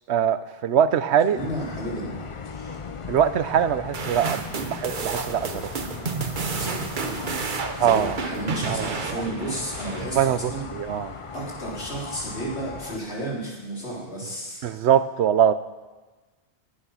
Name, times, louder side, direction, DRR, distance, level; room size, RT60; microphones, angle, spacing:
voice 1, 0.1-1.4 3.1-5.6 7.8-8.2 8.7-9.2 10.2-11.1 14.6-15.5, right 9 dB, 75° right, 13 dB, 0.9 m, -22 dB
voice 2, 1.3-2.8 6.5-7.4 7.8-10.7 11.3-14.6, right 1 dB, 70° left, -4 dB, 3.9 m, -33 dB
sound 1, 1.4-13.0, left 5 dB, 35° left, 0.5 m, -38 dB
sound 2, 3.9-10.5, right 4 dB, 50° right, 1.1 m, -31 dB
20.0 x 8.6 x 5.7 m, 1.3 s
omnidirectional pair, 1.2 m